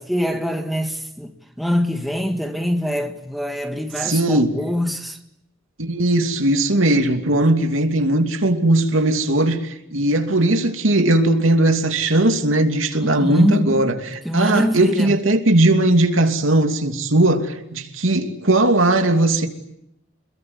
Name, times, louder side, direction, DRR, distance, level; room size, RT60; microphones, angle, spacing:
voice 1, 0.0-5.2 13.0-13.9 14.3-15.2, equal, ahead, 1.9 m, -24 dB
voice 2, 4.0-4.6 5.8-19.5, right 1 dB, 70° right, 2.8 m, -18 dB
27.5 x 21.5 x 9.8 m
head